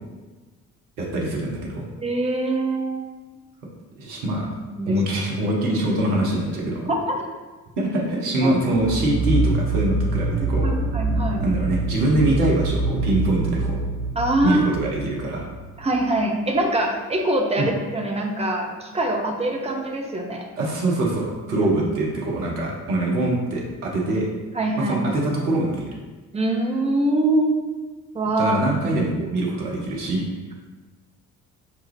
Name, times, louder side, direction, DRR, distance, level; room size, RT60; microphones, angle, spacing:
voice 1, 1.0-1.9 4.0-4.5 4.9-6.9 7.8-10.7 11.4-13.8 14.4-15.5 17.6-17.7 20.6-24.3 24.8-25.9 28.4-30.2, right 1 dB, 80° right, -2 dB, 0.9 m, -24 dB
voice 2, 2.0-3.1 4.7-5.0 6.9-7.3 8.4-8.5 10.4-10.5 10.9-11.5 14.2-14.6 15.8-20.5 21.5-21.7 24.5-24.9 26.3-27.6 28.1-28.7, right 1 dB, 15° right, 1 dB, 0.7 m, -23 dB
sound 1, 8.7-16.0, right 2 dB, 50° right, 0.8 m, -25 dB
5.8 x 2.3 x 3.1 m, 1.3 s
figure-of-eight pair, 50°, 45 cm